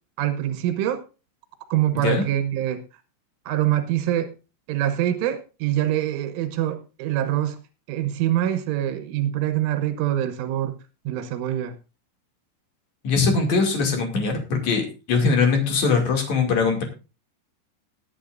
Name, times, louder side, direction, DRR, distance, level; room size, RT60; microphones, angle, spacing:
voice 1, 0.2-1.0 1.7-2.8 3.5-4.3 4.7-7.6 7.9-10.7 11.1-11.8, right 12 dB, 90° right, 9 dB, 3.6 m, -24 dB
voice 2, 13.0-16.8, left 4 dB, 45° left, 3 dB, 3.1 m, -21 dB
20.5 x 8.6 x 2.6 m, 0.31 s
omnidirectional pair, 5.4 m